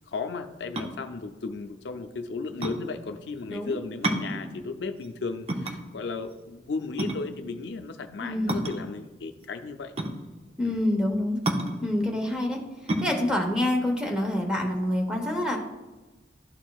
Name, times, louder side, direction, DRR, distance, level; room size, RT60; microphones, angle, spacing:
voice 1, 0.0-9.9 10.6-10.8, left 4 dB, 75° left, 8 dB, 0.5 m, -35 dB
sound 1, 0.6-15.0, right 1 dB, 35° right, 0.6 m, -33 dB
voice 2, 8.2-8.5 10.6-11.4 11.8-12.6 13.0-15.6, left 1 dB, 5° right, 1 dB, 0.9 m, -26 dB
12.0 x 4.4 x 2.3 m, 1.2 s
head